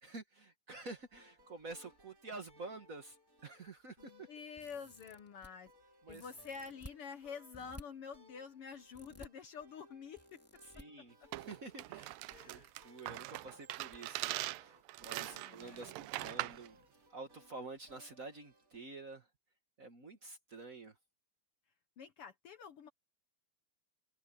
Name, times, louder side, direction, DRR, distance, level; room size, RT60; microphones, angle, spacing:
voice 1, 0.0-3.2 3.4-4.3 6.0-6.2 10.7-12.2 12.4-16.8 17.1-19.3 19.8-21.0, right 3 dB, 50° right, 1.0 m, -49 dB
sound 1, 0.9-18.8, equal, 25° right, 3.0 m, -66 dB
voice 2, 4.0-5.7 6.1-10.4 11.0-11.1 12.3-12.7 15.1-16.4 22.0-22.9, left 6 dB, 70° left, 1.3 m, -49 dB
sound 2, 4.6-5.5 6.1-7.0 7.5-7.8 8.9-9.3 10.2-10.8 12.0-12.4 12.6-12.7 13.9-14.0 14.4-14.5, equal, 5° left, 2.4 m, -54 dB
sound 3, 11.3-16.7, right 19 dB, 85° right, 2.3 m, -42 dB
omnidirectional pair, 4.0 m